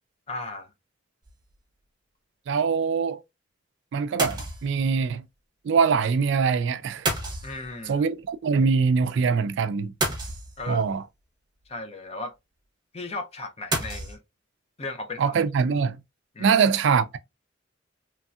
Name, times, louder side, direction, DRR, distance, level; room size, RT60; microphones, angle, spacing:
voice 1, 0.3-0.7 7.4-8.0 10.6-10.8 11.7-12.3 12.9-14.2 14.8-15.3 16.3-16.5, left 3 dB, 30° left, 0.6 m, -36 dB
sound 1, 1.3-1.5 4.2-4.9 7.1-8.0 10.0-10.9 13.7-14.2, right 2 dB, 20° right, 0.9 m, -30 dB
voice 2, 2.5-3.2 3.9-5.2 5.6-7.1 7.9-9.9 10.7-11.0 15.2-16.0 16.4-17.2, right 5 dB, 65° right, 0.3 m, -23 dB
3.1 x 2.7 x 2.3 m
head